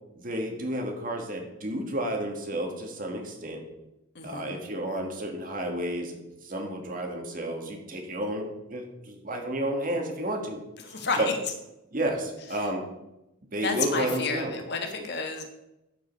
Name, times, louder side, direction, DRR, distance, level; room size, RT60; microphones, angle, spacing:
voice 1, 0.2-3.6 4.2-10.6 10.9-11.3 11.9-12.9 13.5-14.5, right 1 dB, 40° right, 3 dB, 1.8 m, -31 dB
voice 2, 4.1-4.6 10.8-11.4 13.6-15.4, left 4 dB, 55° left, 4 dB, 1.4 m, -31 dB
12.5 x 5.5 x 5.3 m, 0.92 s
head